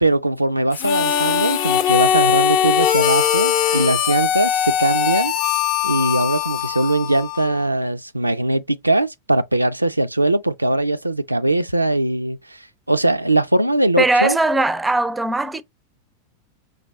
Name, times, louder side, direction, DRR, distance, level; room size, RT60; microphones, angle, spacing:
voice 1, 0.0-5.3 5.8-14.4, right 1 dB, 85° right, 0.3 m, -20 dB
Harmonica, 0.7-7.6, left 9 dB, 45° left, 0.7 m, -20 dB
voice 2, 14.0-15.6, right 2 dB, 10° right, 0.4 m, -19 dB
5.2 x 3.2 x 2.9 m
figure-of-eight pair, 90°, 0 cm